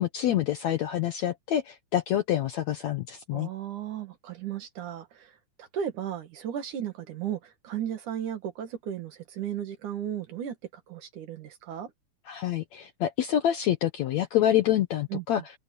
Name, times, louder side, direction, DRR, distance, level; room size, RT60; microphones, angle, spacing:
voice 1, 0.0-3.5 12.3-15.4, left 11 dB, 70° left, 1.8 m, -27 dB
voice 2, 3.3-5.3 5.6-10.5 10.9-11.9 15.1-15.2, right 9 dB, 60° right, 3.2 m, -35 dB
open air
omnidirectional pair, 4.1 m